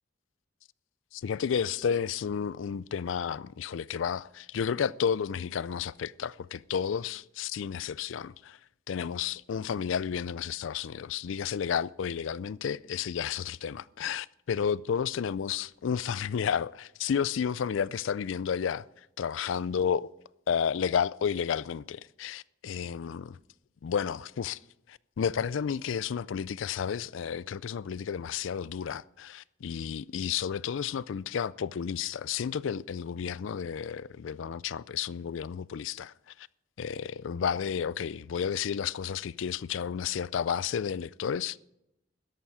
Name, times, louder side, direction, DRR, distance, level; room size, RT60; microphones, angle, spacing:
voice 1, 1.1-8.6 8.9-20.1 20.5-23.4 23.8-24.6 24.9-36.5 36.8-41.6, left 7 dB, 75° left, 0.4 m, -32 dB
13.5 x 11.5 x 4.8 m
head